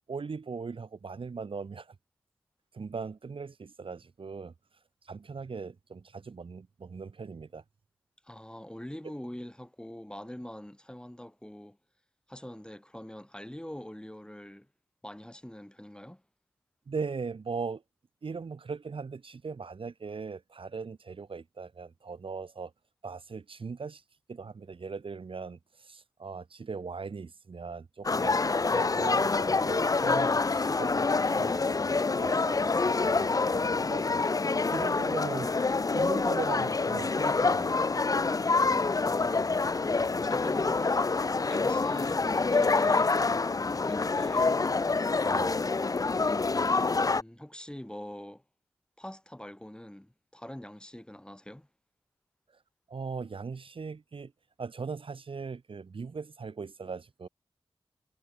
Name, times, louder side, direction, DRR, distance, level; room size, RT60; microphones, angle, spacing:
voice 1, 0.1-1.9 2.7-4.5 5.0-7.6 16.9-17.8 18.2-22.7 23.0-24.0 24.3-34.0 34.7-35.5 35.9-37.9 45.2-45.6 52.9-54.3 54.6-57.3, right 5 dB, 60° right, 1.1 m, -39 dB
voice 2, 8.2-11.8 12.3-14.7 15.0-16.2 39.1-41.0 41.5-43.4 43.7-44.5 46.9-48.4 49.0-51.7, left 1 dB, 10° left, 2.5 m, -44 dB
sound 1, 28.0-47.2, left 4 dB, 35° left, 0.5 m, -26 dB
cardioid pair, 55°, 10 cm